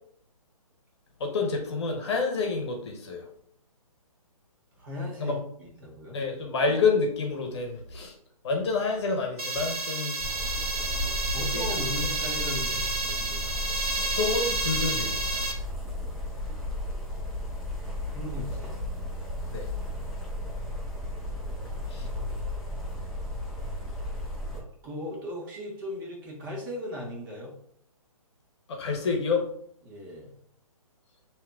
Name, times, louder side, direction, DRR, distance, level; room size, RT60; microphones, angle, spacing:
voice 1, 1.2-3.3 5.2-5.4 6.1-8.1 8.4-10.2 11.4-11.6 14.1-15.4 19.5-19.7 21.9-22.1 28.7-29.5, left 4 dB, 50° left, 3 dB, 1.0 m, -28 dB
voice 2, 4.8-6.2 10.8-13.5 18.1-18.8 21.6-22.1 24.5-27.5 29.8-30.3, left 1 dB, 35° right, -2 dB, 1.5 m, -38 dB
sound 1, 9.4-15.5, right 2 dB, 80° right, 0.9 m, -30 dB
sound 2, 10.2-24.6, left 1 dB, ahead, 0.5 m, -34 dB
7.1 x 2.9 x 2.4 m, 0.67 s
hypercardioid pair, 145°, 19 cm